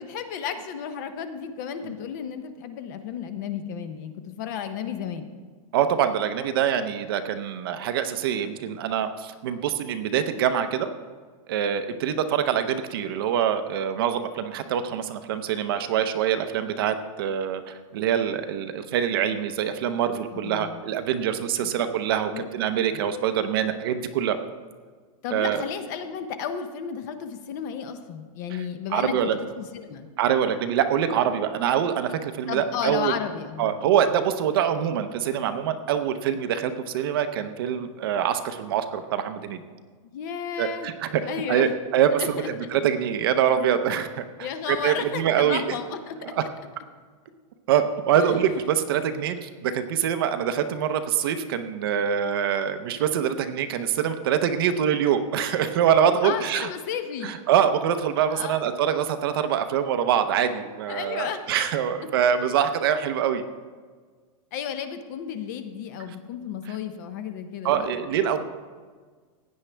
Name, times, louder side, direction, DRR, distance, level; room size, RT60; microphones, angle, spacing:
voice 1, 0.0-5.3 20.3-20.8 21.6-21.7 22.3-22.4 25.2-29.2 29.6-30.1 32.5-33.7 40.0-40.9 41.2-41.7 42.2-42.5 44.4-46.5 48.1-48.3 56.2-57.3 58.3-58.6 60.9-61.4 64.5-67.9, left 8 dB, 30° left, 9 dB, 0.6 m, -33 dB
voice 2, 5.7-10.9 11.5-24.4 25.3-25.6 28.9-29.4 30.2-33.1 33.6-39.6 40.6-41.2 41.5-42.4 42.7-44.2 44.7-45.6 46.3-46.4 47.7-56.7 57.2-63.4 67.6-68.4, right 9 dB, 40° right, 9 dB, 0.7 m, -24 dB
16.0 x 9.5 x 3.3 m, 1.5 s
supercardioid pair, 180°, 19 cm